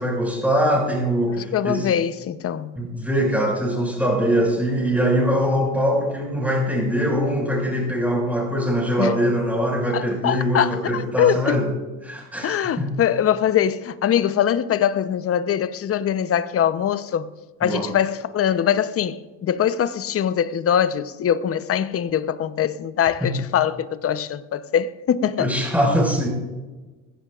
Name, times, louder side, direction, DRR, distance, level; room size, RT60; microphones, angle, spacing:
voice 1, 0.0-1.9 2.8-11.7 12.0-12.9 17.6-17.9 23.2-23.3 25.4-26.3, equal, 5° right, 5.7 m, -22 dB
voice 2, 1.3-2.7 9.0-9.2 9.9-11.6 12.4-17.3 17.6-25.5, left 9 dB, 35° left, 0.9 m, -22 dB
20.5 x 16.5 x 2.5 m
hypercardioid pair, 75°, 39 cm